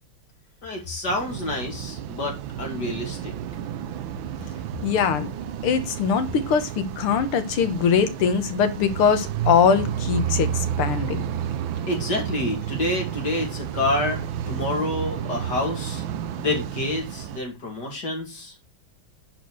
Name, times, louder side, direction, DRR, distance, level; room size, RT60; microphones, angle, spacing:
voice 1, 0.6-3.3 11.9-16.0 16.4-18.5, left 1 dB, 50° left, 1 dB, 3.1 m, -28 dB
sound 1, 1.1-17.4, right 9 dB, 70° right, 1.4 m, -31 dB
voice 2, 4.8-5.3 5.6-11.2, left 6 dB, 80° left, 9 dB, 2.1 m, -22 dB
10.0 x 4.6 x 6.3 m, 0.27 s
omnidirectional pair, 2.4 m